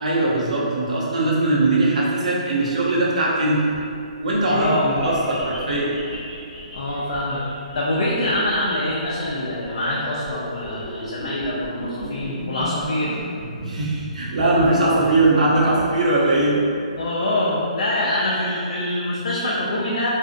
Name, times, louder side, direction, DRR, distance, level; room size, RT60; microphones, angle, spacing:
voice 1, 0.0-3.7 4.2-5.9 13.6-16.6, right 2 dB, 70° right, -5 dB, 0.6 m, -20 dB
sound 1, 3.7-17.6, equal, ahead, 0.6 m, -36 dB
voice 2, 4.5-5.1 6.7-7.4 7.7-13.3 17.0-20.1, left 1 dB, 50° left, -5 dB, 0.3 m, -24 dB
2.5 x 2.0 x 2.5 m, 2.4 s
hypercardioid pair, 180°, 4 cm